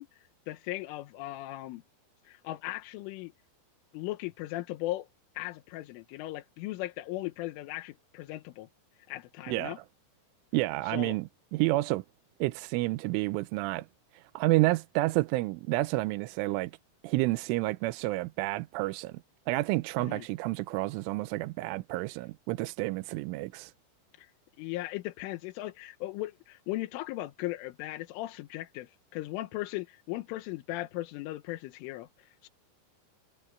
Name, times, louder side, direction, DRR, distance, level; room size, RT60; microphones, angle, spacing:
voice 1, 0.0-1.8 2.3-3.3 3.9-5.1 5.4-8.7 9.1-9.8 10.8-11.2 20.0-20.3 24.2-24.3 24.6-32.5, left 17 dB, 90° left, 3.6 m, -38 dB
voice 2, 10.5-12.0 12.4-13.9 14.1-16.7 17.0-19.2 19.5-23.7, right 20 dB, 90° right, 3.2 m, -30 dB
omnidirectional pair, 5.6 m